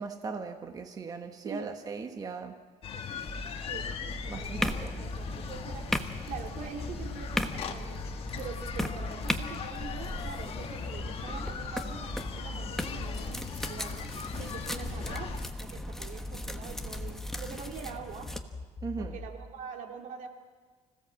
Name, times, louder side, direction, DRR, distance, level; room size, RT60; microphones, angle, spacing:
voice 1, 0.0-2.6 4.3-5.0 18.8-19.2, right 4 dB, 30° right, 6 dB, 1.3 m, -38 dB
voice 2, 1.4-1.8 3.6-5.9 6.3-8.0 8.4-18.3 19.0-20.3, right 6 dB, 75° right, 3 dB, 2.8 m, -44 dB
sound 1, 2.8-15.5, left 7 dB, 45° left, 1.5 m, -40 dB
sound 2, 3.3-19.3, left 2 dB, 20° left, 1.4 m, -42 dB
sound 3, 4.2-18.4, left 1 dB, 5° left, 1.2 m, -38 dB
26.0 x 16.5 x 7.6 m, 1.5 s
cardioid pair, 145°, 13 cm